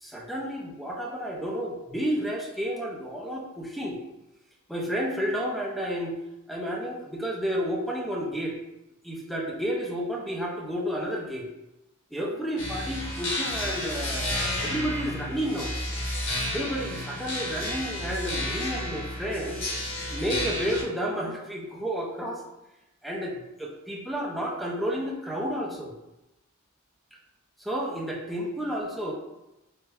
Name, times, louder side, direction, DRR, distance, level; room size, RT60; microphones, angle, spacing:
voice 1, 0.0-4.0 4.7-6.2 6.5-8.6 9.0-11.5 12.1-15.7 16.5-19.6 20.1-22.4 23.0-25.9 27.6-29.1, equal, ahead, -2 dB, 0.5 m, -31 dB
sound 1, 12.6-20.8, left 1 dB, 60° left, 1.0 m, -31 dB
3.4 x 2.1 x 3.4 m, 0.93 s
head